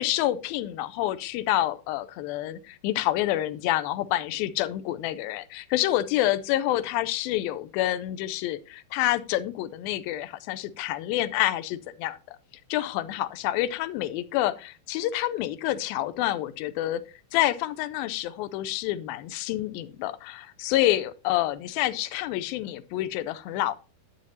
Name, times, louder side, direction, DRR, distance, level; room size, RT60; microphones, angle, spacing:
voice 1, 0.0-12.4 12.7-17.0 17.3-23.7, left 14 dB, 80° left, 2.3 m, -28 dB
11.0 x 9.2 x 2.7 m
omnidirectional pair, 4.5 m